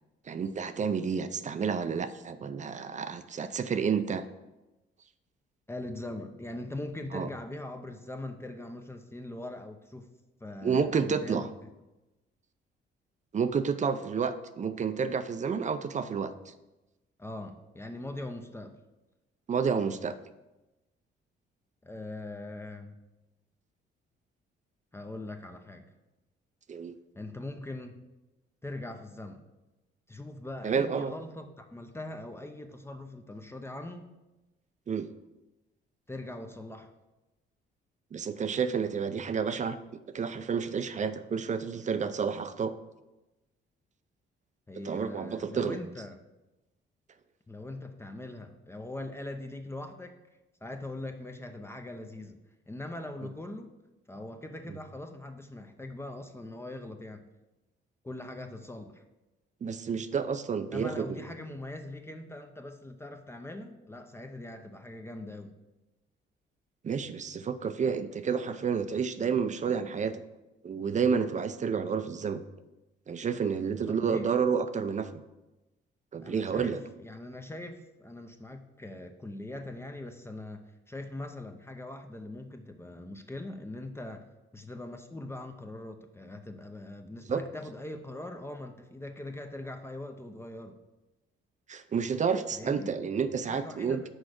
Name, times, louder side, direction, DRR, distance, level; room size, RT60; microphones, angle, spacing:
voice 1, 0.3-4.2 7.1-7.3 10.6-11.5 13.3-16.3 19.5-20.1 26.7-26.9 30.6-31.1 34.9-35.1 38.1-39.8 40.1-42.7 44.8-45.8 59.6-61.2 66.8-70.2 70.6-72.4 73.1-75.2 76.1-76.8 87.3-87.4 91.7-94.1, right 6 dB, 35° right, 11 dB, 0.5 m, -30 dB
voice 2, 5.7-10.1 10.4-11.5 17.2-18.8 21.8-23.0 24.9-25.9 27.2-28.0 28.6-29.5 30.1-34.1 36.1-36.9 44.7-46.2 47.5-50.2 50.6-52.4 52.7-53.7 54.1-57.2 58.0-59.0 60.7-65.5 73.9-74.4 76.2-84.2 84.5-90.8 92.5-92.9 93.4-94.1, left 1 dB, 10° left, 5 dB, 0.6 m, -41 dB
6.3 x 4.8 x 6.4 m, 1.0 s
cardioid pair, 90°, 20 cm